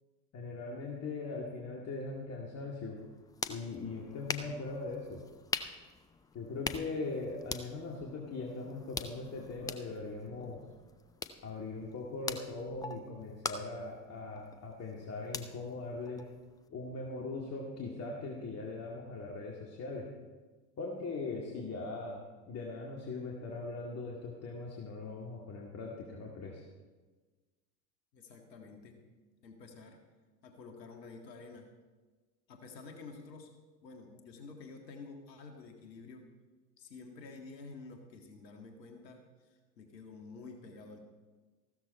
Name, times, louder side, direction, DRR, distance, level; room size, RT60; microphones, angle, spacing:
voice 1, 0.3-3.0 3.5-5.2 6.3-10.7 11.4-16.3 16.7-20.1 20.8-26.6, left 3 dB, 30° left, -2 dB, 2.2 m, -40 dB
sound 1, 3.0-16.7, left 4 dB, 10° left, 0.4 m, -44 dB
voice 2, 28.1-29.0 29.4-30.0 30.4-31.7 32.5-33.5 33.8-36.3 36.8-41.1, left 4 dB, 75° left, 3 dB, 1.9 m, -50 dB
15.0 x 13.0 x 4.3 m, 1.3 s
hypercardioid pair, 85°, 49 cm